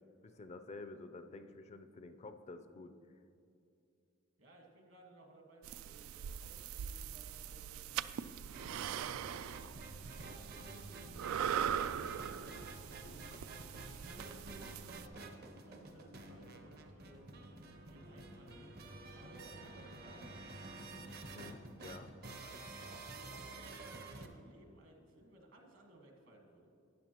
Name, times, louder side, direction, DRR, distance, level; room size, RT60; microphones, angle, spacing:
voice 1, 0.2-2.9 21.2-22.1, left 3 dB, 30° left, 9 dB, 0.4 m, -50 dB
voice 2, 4.4-20.7 22.7-26.7, right 1 dB, 65° right, 1 dB, 1.6 m, -61 dB
sound 1, 5.6-15.1, right 9 dB, 85° right, 0.3 m, -41 dB
sound 2, 8.5-24.3, right 2 dB, 50° right, 0.7 m, -50 dB
12.5 x 9.9 x 2.9 m, 2.6 s
head